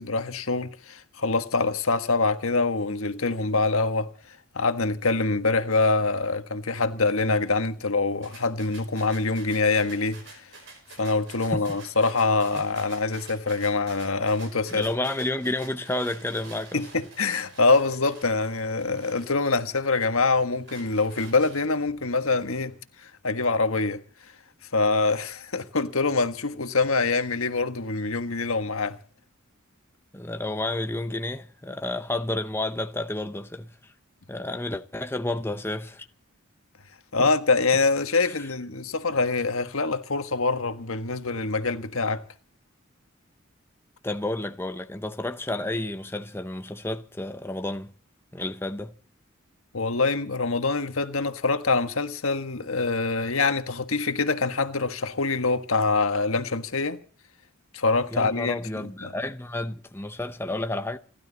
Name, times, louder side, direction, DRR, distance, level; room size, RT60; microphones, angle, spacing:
voice 1, 0.0-4.1 4.5-10.4 11.0-14.9 16.7-22.7 23.0-24.0 24.7-29.0 37.1-42.2 49.7-57.0 57.7-59.1, left 3 dB, 80° left, 1.5 m, -25 dB
sound 1, 8.2-19.9 20.3-21.9, right 3 dB, 60° right, 5.2 m, -49 dB
voice 2, 14.7-16.8 30.1-33.9 34.3-36.1 37.2-37.3 38.2-38.5 44.0-47.9 48.3-48.9 58.1-61.0, left 2 dB, 10° left, 0.7 m, -31 dB
29.0 x 12.0 x 4.1 m
head